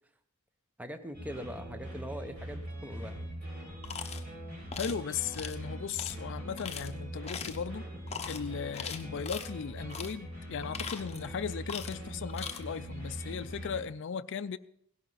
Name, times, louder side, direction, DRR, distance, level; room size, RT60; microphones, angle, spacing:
voice 1, 0.8-3.3, equal, 5° right, 0.7 m, -42 dB
sound 1, 1.1-13.8, right 1 dB, 45° right, 4.7 m, -42 dB
sound 2, 3.8-4.2 4.7-5.0 5.3-5.6 6.0-6.1 6.6-6.9 7.3-7.6 8.1-8.4 8.7-9.5 9.9-10.1 10.6-11.3 11.7-12.0 12.3-12.6, left 7 dB, 30° left, 0.9 m, -40 dB
voice 2, 4.8-7.9 8.3-14.6, left 6 dB, 55° left, 0.4 m, -37 dB
17.5 x 11.5 x 4.1 m
head